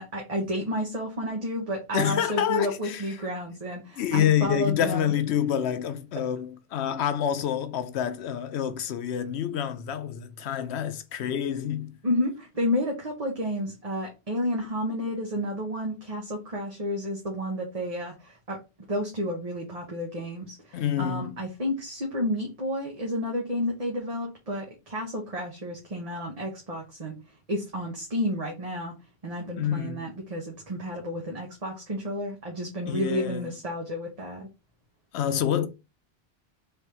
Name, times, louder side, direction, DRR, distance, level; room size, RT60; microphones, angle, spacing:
voice 1, 0.0-5.1 12.0-18.6 18.9-27.2 27.5-28.9 29.2-34.5, equal, 35° right, 1.0 m, -31 dB
voice 2, 1.9-3.2 4.0-11.9 20.7-21.4 29.6-30.1 32.9-33.5 35.1-35.7, left 9 dB, 90° left, 0.9 m, -27 dB
3.4 x 3.4 x 4.4 m
omnidirectional pair, 1.1 m